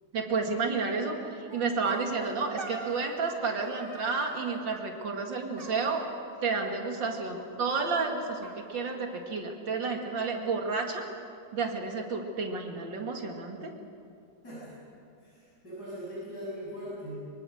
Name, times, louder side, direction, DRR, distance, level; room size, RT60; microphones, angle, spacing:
voice 1, 0.1-6.0 6.4-11.0 11.5-13.7, right 4 dB, 80° right, 2 dB, 2.9 m, -31 dB
sound 1, 1.5-3.4 3.6-4.7 5.6-6.3 6.6-7.4 7.7-7.8 8.1-8.2 8.4-9.5, right 3 dB, 30° right, 2.4 m, -44 dB
voice 2, 14.4-14.8 15.2-17.2, equal, 55° left, -8 dB, 7.8 m, -40 dB
24.5 x 24.0 x 6.5 m, 2.4 s
omnidirectional pair, 2.0 m